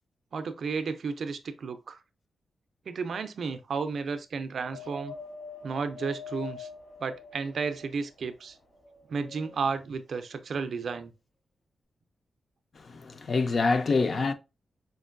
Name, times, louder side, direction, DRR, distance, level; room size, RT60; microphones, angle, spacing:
voice 1, 0.3-2.0 2.9-5.1 5.6-6.7 7.0-8.6 9.1-11.1, right 5 dB, 55° right, 0.4 m, -33 dB
Wind, 4.6-8.1 8.7-9.7 10.5-10.6, left 4 dB, 70° left, 1.8 m, -44 dB
voice 2, 12.8-14.3, left 3 dB, 40° left, 0.3 m, -26 dB
4.4 x 2.5 x 2.4 m
wide cardioid pair, 170°, 0 cm